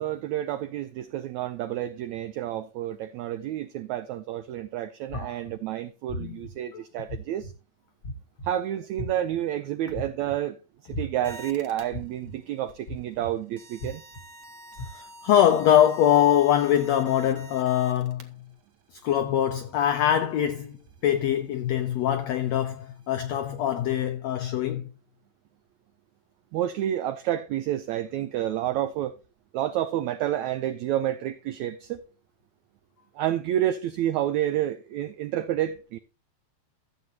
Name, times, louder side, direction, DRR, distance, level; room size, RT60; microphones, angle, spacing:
voice 1, 0.0-7.5 8.4-10.6 10.9-14.0 26.5-29.2 29.5-32.0 33.1-36.0, right 12 dB, 85° right, 1.6 m, -29 dB
sound 1, 5.1-5.5 6.1-6.5 7.1-7.5 8.0-8.5 9.0-9.4 9.9-10.4 10.9-11.3 11.9-12.3 12.9-13.3 13.8-14.2 14.8-14.9, left 1 dB, 50° left, 1.0 m, -35 dB
sound 2, 11.2-11.8 12.5-12.9 13.6-18.2 19.8-19.9 20.2-20.3 20.5-24.0, right 1 dB, 60° right, 1.1 m, -48 dB
voice 2, 14.9-18.3 19.0-20.8 21.0-24.9, left 10 dB, 85° left, 1.5 m, -23 dB
14.0 x 8.1 x 2.9 m
omnidirectional pair, 4.0 m